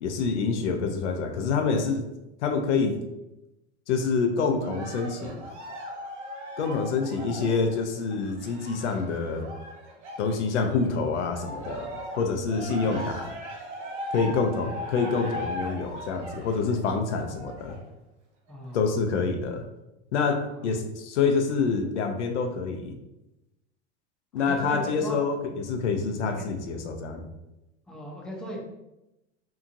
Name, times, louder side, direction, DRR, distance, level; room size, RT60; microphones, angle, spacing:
voice 1, 0.0-2.1 2.4-3.0 3.9-5.5 6.6-9.5 10.2-11.9 12.2-13.3 14.1-17.8 18.7-19.6 20.1-23.0 24.3-27.2, left 4 dB, 85° left, 5 dB, 0.5 m, -27 dB
Cheering, 4.6-10.9 11.3-17.9 18.5-18.6, equal, 85° right, 0.8 m, -38 dB
voice 2, 18.5-18.8 20.5-20.8 24.3-25.2 26.3-26.5 27.9-28.6, equal, ahead, -2 dB, 0.5 m, -38 dB
2.8 x 2.5 x 2.5 m, 0.93 s
hypercardioid pair, 100°, 34 cm